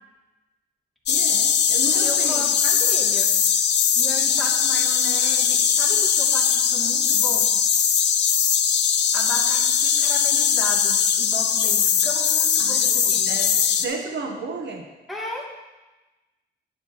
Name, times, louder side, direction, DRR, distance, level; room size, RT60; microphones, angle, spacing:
sound 1, 1.1-13.8, left 7 dB, 70° left, 0.7 m, -20 dB
voice 1, 1.1-2.5 12.6-14.8, right 3 dB, 70° right, 2 dB, 1.2 m, -33 dB
voice 2, 1.9-3.3 4.0-7.5 9.1-13.3 15.1-15.5, left 2 dB, ahead, -4 dB, 2.7 m, -35 dB
12.0 x 10.5 x 3.1 m, 1.1 s
cardioid pair, 110°, 19 cm